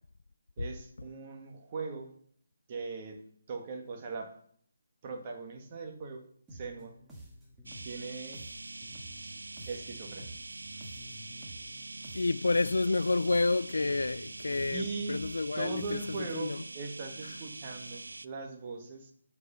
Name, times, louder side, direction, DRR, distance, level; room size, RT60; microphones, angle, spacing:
voice 1, 0.6-2.1 2.7-4.4 5.0-6.2 6.5-7.0 7.8-8.5 9.2-9.3 9.7-10.3 14.7-15.3 15.5-19.1, right 4 dB, 30° right, 1.6 m, -40 dB
sound 1, 6.5-16.4, right 1 dB, 10° right, 1.7 m, -50 dB
sound 2, 7.7-18.3, right 2 dB, 80° right, 0.4 m, -44 dB
voice 2, 12.1-16.0 16.3-16.6, left 3 dB, 75° left, 0.3 m, -29 dB
8.3 x 4.8 x 6.8 m
figure-of-eight pair, 155°, 0 cm